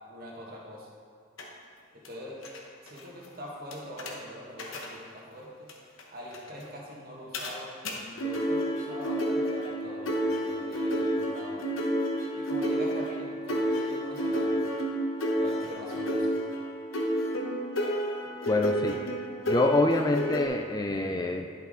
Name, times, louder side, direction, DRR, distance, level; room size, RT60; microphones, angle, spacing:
voice 1, 0.1-0.9 1.9-2.4 2.8-5.7 6.1-11.6 12.3-14.6 15.3-16.4, equal, 50° right, -3 dB, 1.6 m, -43 dB
sound 1, 1.4-1.5 2.0-2.1 2.4-2.6 2.9-3.0 3.7-4.1 4.6-4.9 5.7-5.8 6.0-6.1 6.3-6.5 7.3-7.5 7.8-7.9 8.2-20.5, equal, 85° left, 1.0 m, -30 dB
voice 2, 18.5-19.0 19.5-21.5, left 2 dB, 20° left, 4 dB, 0.3 m, -26 dB
10.5 x 5.6 x 3.7 m, 2.3 s
head